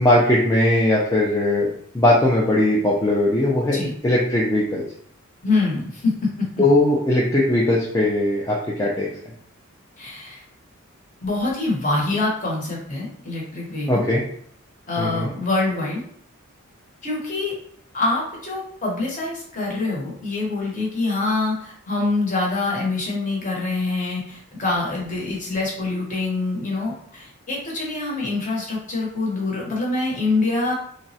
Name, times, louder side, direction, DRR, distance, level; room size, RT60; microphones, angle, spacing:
voice 1, 0.0-1.7 1.9-3.8 4.0-4.8 6.6-9.1 13.9-14.2 15.0-15.3, left 1 dB, 15° left, -4 dB, 0.3 m, -19 dB
voice 2, 5.4-6.5 10.0-10.4 11.2-14.0 14.9-16.0 17.0-17.5 17.9-30.7, left 3 dB, 35° left, -3 dB, 0.8 m, -25 dB
3.3 x 2.0 x 2.7 m, 0.64 s
head